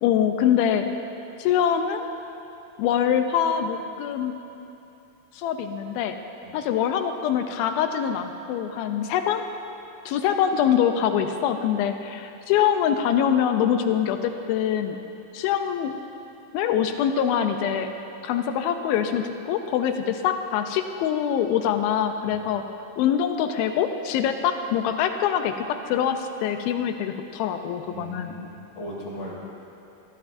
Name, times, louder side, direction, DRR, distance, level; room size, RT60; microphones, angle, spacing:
voice 1, 0.0-0.9 1.4-2.1 2.8-4.3 5.3-6.2 6.5-9.4 10.1-15.0 15.3-15.9 16.5-17.9 18.2-22.6 23.0-25.5 25.9-28.3, left 9 dB, 80° left, 7 dB, 2.2 m, -24 dB
voice 2, 27.9-29.4, equal, 50° left, -7 dB, 4.7 m, -38 dB
23.0 x 14.0 x 2.6 m, 2.8 s
omnidirectional pair, 4.7 m